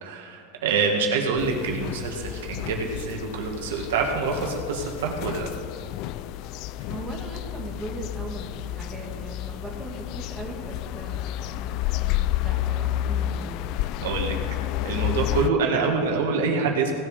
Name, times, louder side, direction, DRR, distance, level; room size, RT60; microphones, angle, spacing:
voice 1, 0.0-5.5 14.0-14.4 14.8-16.9, right 4 dB, 85° right, 1 dB, 2.0 m, -26 dB
sound 1, 1.4-15.5, left 13 dB, 45° left, 0.3 m, -30 dB
voice 2, 6.9-11.2 11.6-13.7, right 2 dB, 10° right, -1 dB, 1.8 m, -39 dB
17.5 x 7.4 x 5.1 m, 2.4 s
supercardioid pair, 155°, 0 cm